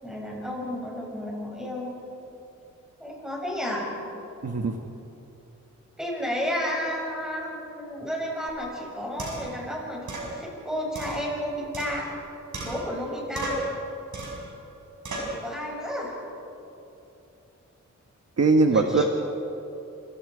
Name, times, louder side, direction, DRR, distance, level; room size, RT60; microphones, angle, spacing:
voice 1, 0.0-1.9 3.0-3.9 6.0-13.7 15.2-16.2 18.7-19.0, equal, ahead, -3 dB, 7.4 m, -32 dB
voice 2, 4.4-4.8 18.4-19.0, right 3 dB, 55° right, 4 dB, 1.4 m, -20 dB
sound 1, 8.5-8.6 9.2-9.6 10.1-10.3 11.0-12.2 12.5-13.1 13.4-13.8 14.1-14.5 15.0-15.4, right 2 dB, 70° right, 6.3 m, -34 dB
28.0 x 27.5 x 5.0 m, 2.9 s
wide cardioid pair, 135°, 31 cm